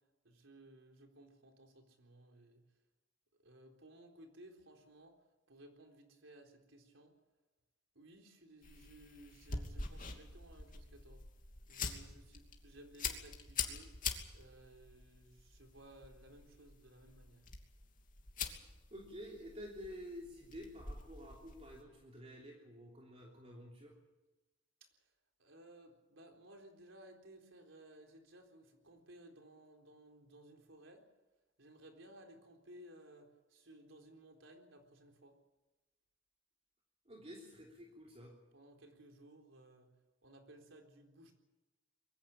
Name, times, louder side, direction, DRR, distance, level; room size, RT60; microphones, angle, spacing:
voice 1, 0.2-2.6 3.4-5.2 5.5-7.1 7.9-11.3 11.7-13.9 14.3-17.5 25.0-25.1 25.4-31.0 31.6-35.4 38.5-39.9 40.2-41.4, right 1 dB, 90° right, 2 dB, 4.0 m, -59 dB
sound 1, 8.6-21.8, left 5 dB, 45° left, 2.8 m, -45 dB
voice 2, 18.9-24.0 37.0-38.3, equal, 35° right, -1 dB, 3.3 m, -50 dB
22.5 x 16.0 x 8.8 m, 1.1 s
head